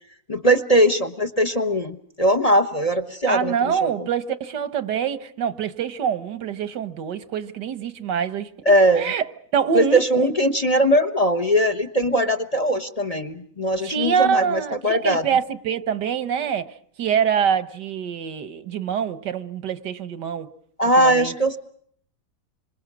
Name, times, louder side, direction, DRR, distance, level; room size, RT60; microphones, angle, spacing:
voice 1, 0.3-3.5 3.8-3.9 8.6-9.1 9.7-15.2 20.8-21.6, right 1 dB, 25° left, 1.1 m, -20 dB
voice 2, 3.3-9.2 9.5-10.3 13.8-20.5 21.0-21.4, right 7 dB, 90° right, 1.8 m, -25 dB
27.0 x 26.0 x 6.2 m
omnidirectional pair, 1.8 m